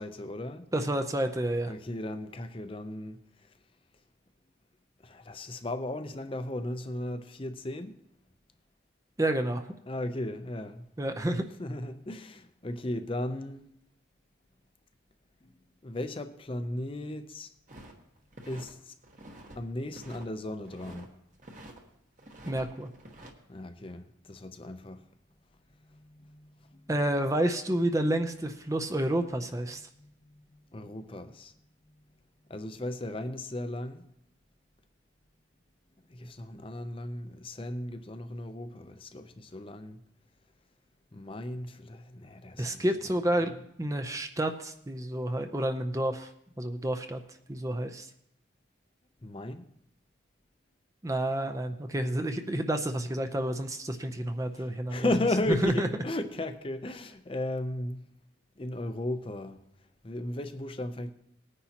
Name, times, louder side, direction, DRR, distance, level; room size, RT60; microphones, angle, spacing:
voice 1, 0.0-0.7 1.7-3.2 5.0-8.0 9.9-10.8 11.6-13.7 15.4-15.5 15.8-17.5 18.5-18.9 19.6-21.1 23.5-25.0 25.8-26.9 29.7-31.5 31.9-32.0 32.5-34.0 36.1-40.0 41.1-42.8 49.2-49.6 54.5-58.0 58.6-59.6 60.0-61.1, left 1 dB, 25° left, 0.6 m, -36 dB
voice 2, 0.7-1.7 9.2-9.7 11.0-11.5 22.5-22.9 26.9-29.8 42.6-43.5 43.8-46.3 46.6-47.2 47.5-48.1 51.0-55.1 55.5-55.9, right 1 dB, 15° right, 0.5 m, -29 dB
sound 1, 17.7-18.7 19.0-19.6 19.9-21.1 21.4-21.8 22.2-23.3, right 1 dB, 40° right, 1.3 m, -48 dB
19.0 x 9.8 x 2.9 m
head